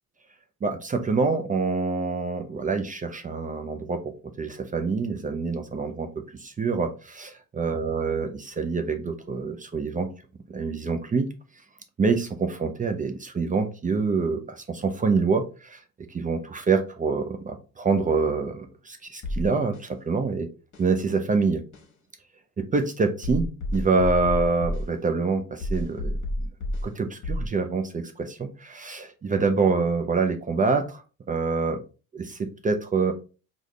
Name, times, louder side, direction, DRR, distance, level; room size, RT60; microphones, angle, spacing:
voice 1, 0.6-6.1 6.4-10.1 10.5-11.3 12.0-15.8 16.1-20.5 20.8-21.6 22.6-26.2 26.8-31.0 31.3-31.8 32.1-33.1, right 4 dB, 20° right, 6 dB, 0.5 m, -26 dB
sound 1, 19.2-19.9 20.7-20.9 21.7-21.9 22.7-22.9 23.2-24.9 25.6-26.9 27.2-27.5, left 1 dB, 40° left, 1.3 m, -30 dB
4.9 x 2.5 x 3.1 m, 0.34 s
figure-of-eight pair, 60°, 45 cm